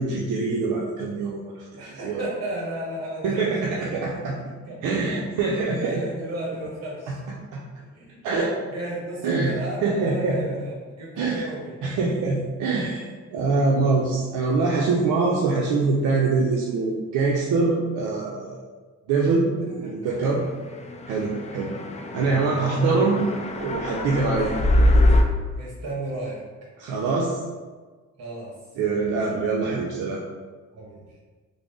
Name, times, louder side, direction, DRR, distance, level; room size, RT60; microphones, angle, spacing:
voice 1, 0.0-2.2 3.2-4.3 4.8-5.9 7.1-7.2 7.5-7.6 8.2-8.6 9.2-9.5 9.8-10.4 11.2-11.5 11.8-13.1 13.3-18.6 19.1-20.4 21.1-21.7 22.1-23.2 23.6-24.5 26.8-27.4 28.8-30.2, right 3 dB, 85° right, -3 dB, 0.5 m, -24 dB
voice 2, 1.8-3.5 3.7-4.3 4.6-5.2 5.6-7.4 7.7-8.2 8.7-11.8 19.8-20.2 22.4-22.8 25.5-26.4 28.2-28.5 30.7-31.0, right 1 dB, 55° right, -4 dB, 1.4 m, -34 dB
sound 1, 20.8-25.2, left 1 dB, 25° left, 0.4 m, -23 dB
3.6 x 2.0 x 3.6 m, 1.4 s
cardioid pair, 90°, 30 cm